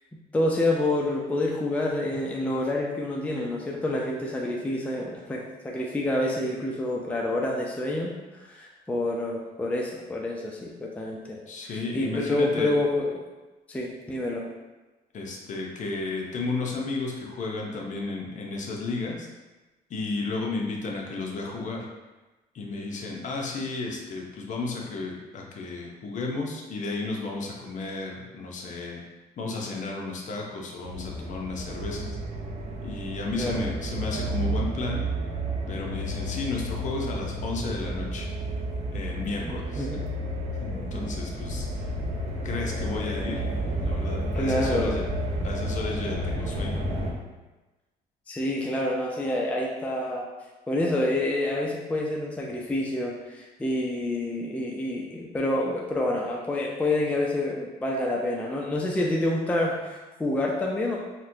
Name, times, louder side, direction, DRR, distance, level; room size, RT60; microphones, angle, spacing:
voice 1, 0.3-13.2 13.7-14.5 33.4-33.6 39.5-40.0 44.3-45.0 48.3-50.3 50.7-61.0, left 1 dB, 10° left, -2 dB, 0.4 m, -28 dB
voice 2, 11.5-12.7 15.1-19.3 19.9-21.9 22.5-29.0 29.4-32.1 32.8-35.0 35.7-38.3 38.9-39.9 40.6-41.9 42.4-45.1 45.4-46.8, left 3 dB, 45° left, -1 dB, 0.6 m, -33 dB
sound 1, 30.8-47.1, right 1 dB, 40° right, 0.6 m, -31 dB
4.1 x 2.1 x 2.6 m, 1.1 s
cardioid pair, 110°, 17 cm